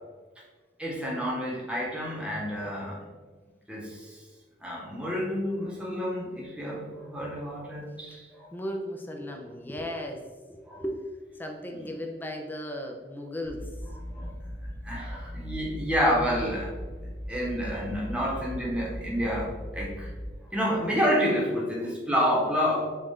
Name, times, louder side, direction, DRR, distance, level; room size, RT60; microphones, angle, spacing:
voice 1, 0.8-3.0 3.7-4.2 4.6-8.5 10.6-10.8 14.1-14.3 14.8-16.7 17.3-20.1 20.5-22.9, equal, 5° right, -4 dB, 1.0 m, -29 dB
voice 2, 8.5-13.7, equal, 10° left, 2 dB, 0.4 m, -36 dB
sound 1, 13.4-20.3, equal, 70° right, 0.9 m, -38 dB
5.4 x 2.5 x 3.5 m, 1.4 s
head